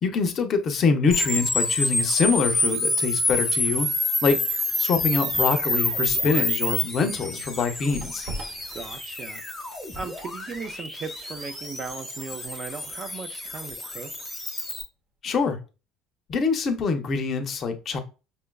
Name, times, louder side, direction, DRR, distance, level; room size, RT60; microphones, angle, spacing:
voice 1, 0.0-3.9 4.2-4.4 4.8-8.3 15.2-15.6 16.3-18.0, left 5 dB, 35° left, 0.5 m, -24 dB
sound 1, 1.1-14.8, left 1 dB, ahead, 0.8 m, -28 dB
sound 2, 7.8-14.6 14.9-15.1, right 1 dB, 60° right, 0.8 m, -44 dB
voice 2, 8.7-9.4 9.9-14.1, right 5 dB, 30° right, 0.3 m, -37 dB
5.3 x 2.3 x 2.2 m
cardioid pair, 155°, 0 cm